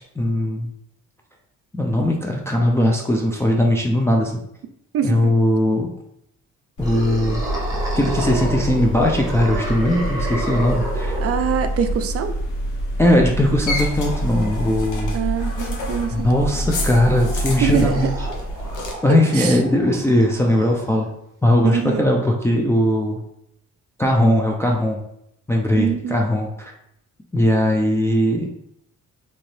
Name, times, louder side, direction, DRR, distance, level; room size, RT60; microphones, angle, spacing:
voice 1, 0.2-0.7 1.7-4.3 5.0-5.9 6.8-7.4 7.9-11.2 13.0-15.2 16.1-18.1 19.0-21.1 21.4-23.2 24.0-25.0 25.5-26.7 27.3-28.5, left 1 dB, 10° left, 0 dB, 0.4 m, -19 dB
voice 2, 4.9-5.3 11.2-12.3 15.1-16.3 17.6-18.1 19.1-19.6 21.6-22.1 25.8-26.2, right 7 dB, 50° right, 8 dB, 0.4 m, -24 dB
sound 1, 6.8-18.9, equal, 85° left, 0.8 m, -26 dB
sound 2, 6.8-11.8 14.0-21.1, right 1 dB, 10° right, 1.0 m, -32 dB
2.9 x 2.6 x 3.2 m, 0.76 s
cardioid pair, 90°, 30 cm